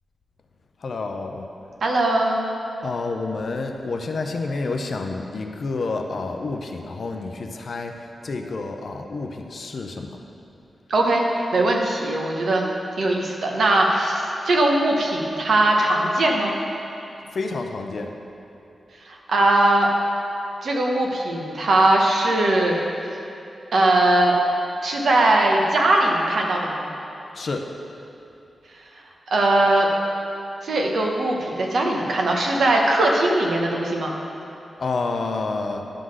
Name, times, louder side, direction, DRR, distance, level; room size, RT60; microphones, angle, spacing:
voice 1, 0.8-1.5 2.8-7.9 8.2-10.2 17.3-18.1 27.4-27.7 34.8-35.8, left 3 dB, 50° left, 4 dB, 0.5 m, -29 dB
voice 2, 1.8-2.5 10.9-12.7 13.0-16.5 19.1-19.9 20.6-22.8 23.7-24.3 24.8-26.9 29.3-29.9 30.6-34.2, right 2 dB, 60° right, 0 dB, 1.0 m, -20 dB
11.0 x 3.9 x 6.4 m, 2.7 s
wide cardioid pair, 180°, 0 cm